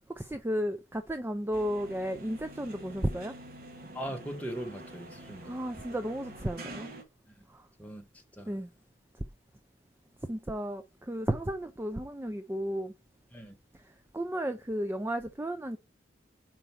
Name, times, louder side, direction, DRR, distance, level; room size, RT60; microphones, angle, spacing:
voice 1, 0.1-3.3 5.4-6.9 7.5-7.6 8.5-8.7 10.3-12.9 14.1-15.8, equal, 10° right, 0.4 m, -33 dB
sound 1, 1.5-7.0, right 1 dB, 50° right, 1.4 m, -47 dB
voice 2, 3.9-5.6 7.8-8.0 8.4-8.5 13.3-13.5, right 1 dB, 10° left, 1.2 m, -39 dB
5.1 x 4.5 x 5.6 m
head